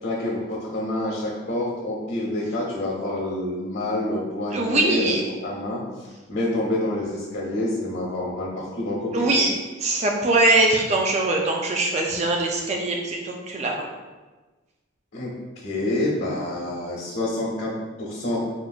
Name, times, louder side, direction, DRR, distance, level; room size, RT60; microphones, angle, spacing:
voice 1, 0.0-5.2 5.4-5.8 6.3-9.3 15.1-15.3 15.6-18.4, left 1 dB, 85° left, -5 dB, 1.0 m, -27 dB
voice 2, 4.5-5.3 9.1-9.5 9.8-13.9, right 2 dB, 35° right, 1 dB, 0.3 m, -22 dB
3.5 x 2.5 x 2.3 m, 1.2 s
head